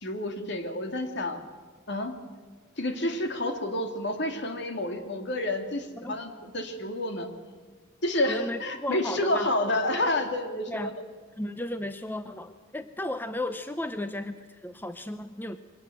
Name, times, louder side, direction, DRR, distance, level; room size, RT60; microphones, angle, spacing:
voice 1, 0.0-1.4 1.9-2.1 2.8-7.3 8.0-10.9 11.4-11.5, left 1 dB, 60° left, 6 dB, 2.5 m, -29 dB
voice 2, 8.3-9.7 10.7-10.9 11.4-15.6, left 1 dB, 10° left, 10 dB, 0.7 m, -35 dB
23.5 x 18.5 x 7.9 m, 1.5 s
head